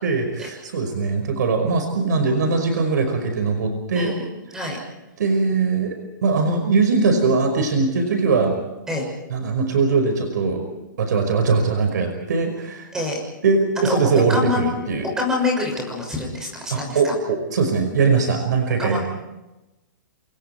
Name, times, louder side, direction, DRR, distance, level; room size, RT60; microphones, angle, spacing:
voice 1, 0.0-4.1 5.2-8.5 9.3-10.7 11.0-12.9 13.4-15.1 16.7-19.0, right 4 dB, 65° right, 5 dB, 5.4 m, -21 dB
voice 2, 14.3-14.7 15.2-17.1 18.8-19.0, left 3 dB, 5° right, 0 dB, 6.4 m, -25 dB
28.0 x 26.0 x 4.6 m, 1.0 s
hypercardioid pair, 175°, 11 cm